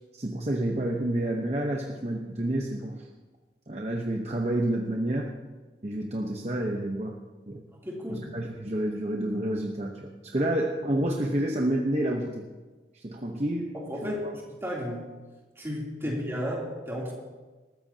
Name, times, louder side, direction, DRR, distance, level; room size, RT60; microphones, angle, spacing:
voice 1, 0.2-3.1 3.7-5.3 5.8-7.1 7.5-7.6 8.1-12.4 13.0-13.7 14.0-14.1, right 1 dB, 40° right, 0 dB, 1.0 m, -29 dB
voice 2, 7.8-8.3 13.7-15.1 15.6-17.1, equal, 15° right, -4 dB, 3.1 m, -33 dB
20.5 x 14.0 x 2.8 m, 1.3 s
head